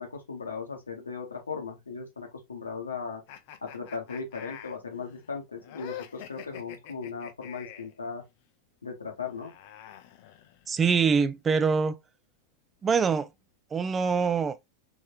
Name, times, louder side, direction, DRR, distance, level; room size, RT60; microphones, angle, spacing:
voice 1, 0.0-3.2 3.6-8.2 8.8-9.5, left 5 dB, 75° left, 0.9 m, -37 dB
sound 1, 3.3-8.0 9.2-10.9, left 11 dB, 50° left, 0.5 m, -46 dB
voice 2, 10.7-12.0 12.8-13.3 13.7-14.6, right 5 dB, 20° right, 0.4 m, -24 dB
3.5 x 3.2 x 2.8 m
figure-of-eight pair, 90°, 0 cm